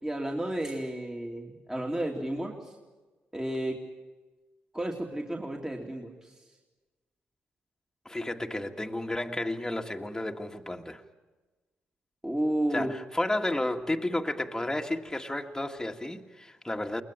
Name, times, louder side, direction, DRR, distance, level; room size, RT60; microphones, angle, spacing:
voice 1, 0.0-2.8 3.3-3.8 4.7-6.4 12.2-12.9, right 1 dB, 15° right, 2.7 m, -32 dB
voice 2, 8.1-11.0 12.7-17.0, left 1 dB, 10° left, 1.8 m, -32 dB
22.0 x 20.0 x 8.9 m
supercardioid pair, 55°, 5 cm